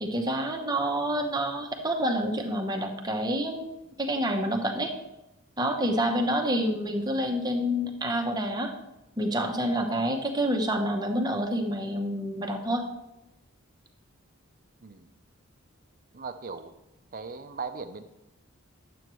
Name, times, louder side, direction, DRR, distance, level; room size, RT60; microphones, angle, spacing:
voice 1, 0.0-4.9 5.6-8.7 9.2-12.9, equal, 20° right, 3 dB, 0.9 m, -28 dB
voice 2, 16.1-16.7 17.1-18.0, right 4 dB, 40° right, 10 dB, 0.5 m, -38 dB
11.0 x 7.8 x 3.1 m, 0.94 s
head